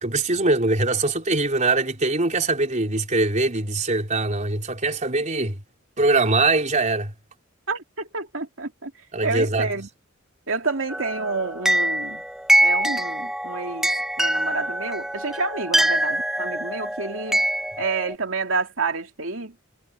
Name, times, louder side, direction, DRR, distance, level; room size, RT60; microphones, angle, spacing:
voice 1, 0.0-5.6 6.0-7.1 9.1-9.7, right 3 dB, 35° right, 4.1 m, -22 dB
voice 2, 7.7-8.9 9.2-9.9 10.5-12.2 12.6-17.5 17.8-19.6, right 3 dB, 70° right, 3.1 m, -29 dB
sound 1, 10.9-18.1, right 1 dB, ahead, 0.5 m, -24 dB
head